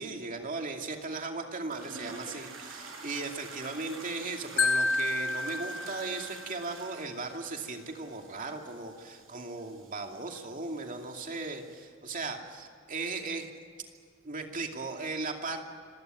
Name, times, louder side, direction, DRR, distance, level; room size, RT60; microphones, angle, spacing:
voice 1, 0.0-13.5 14.2-15.6, right 3 dB, 45° right, 3 dB, 2.6 m, -37 dB
sound 1, 1.7-11.8, right 3 dB, 75° right, 6.9 m, -48 dB
Marimba xylophone, 4.6-6.7, left 3 dB, 70° left, 0.9 m, -30 dB
26.0 x 16.0 x 9.1 m, 2.2 s
head